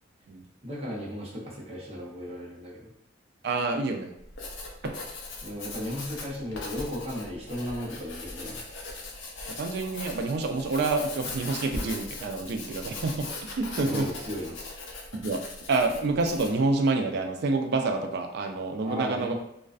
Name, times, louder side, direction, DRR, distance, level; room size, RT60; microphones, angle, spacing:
voice 1, 0.6-2.9 5.4-8.6 13.8-14.8 18.8-19.4, equal, 30° right, -5 dB, 0.7 m, -35 dB
voice 2, 3.4-4.1 4.8-4.9 9.6-14.1 15.1-15.4 15.7-19.3, right 3 dB, 55° right, 5 dB, 0.3 m, -28 dB
Writing, 4.2-16.6, left 3 dB, 80° left, 0.5 m, -39 dB
2.4 x 2.2 x 2.4 m, 0.78 s
head